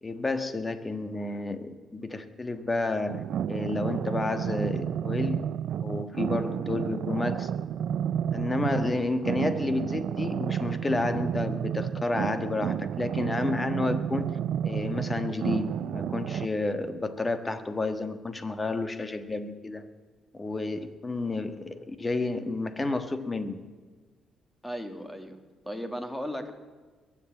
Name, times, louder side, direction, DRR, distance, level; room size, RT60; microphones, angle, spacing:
voice 1, 0.0-5.4 5.8-7.5 8.3-14.4 14.6-19.8 20.3-23.6, left 2 dB, 20° left, 10 dB, 1.4 m, -31 dB
sound 1, 3.1-16.5, right 9 dB, 70° right, 0.4 m, -31 dB
voice 2, 24.6-25.4 25.6-26.5, equal, 5° left, 7 dB, 2.0 m, -35 dB
21.5 x 7.5 x 8.9 m, 1.4 s
cardioid pair, 90°, 0 cm